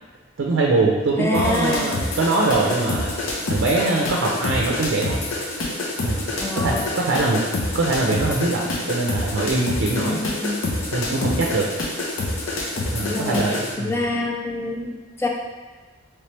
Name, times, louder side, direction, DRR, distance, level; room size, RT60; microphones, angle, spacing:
voice 1, 0.4-3.1 3.5-5.2 6.0-7.4 7.7-10.2 10.9-11.7 12.9-14.1, right 3 dB, 70° right, -2 dB, 0.4 m, -22 dB
voice 2, 1.2-1.9 6.4-6.9 10.0-10.6 13.0-15.3, left 2 dB, 10° left, 0 dB, 0.3 m, -26 dB
sound 1, 1.3-13.7, left 2 dB, 90° left, 0.7 m, -27 dB
3.2 x 3.0 x 3.2 m, 1.3 s
head